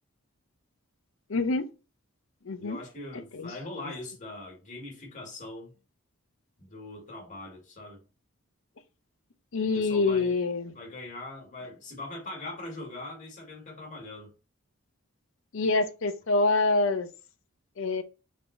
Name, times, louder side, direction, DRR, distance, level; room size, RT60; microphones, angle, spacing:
voice 1, 1.3-1.7 2.4-2.8 3.3-3.5 3.8-3.9 9.5-10.7 15.5-17.1 17.8-18.0, left 3 dB, 65° left, 0.6 m, -26 dB
voice 2, 2.6-5.7 6.6-8.0 9.7-10.4 10.7-14.3, left 2 dB, 35° left, 1.7 m, -41 dB
3.8 x 3.6 x 3.1 m
head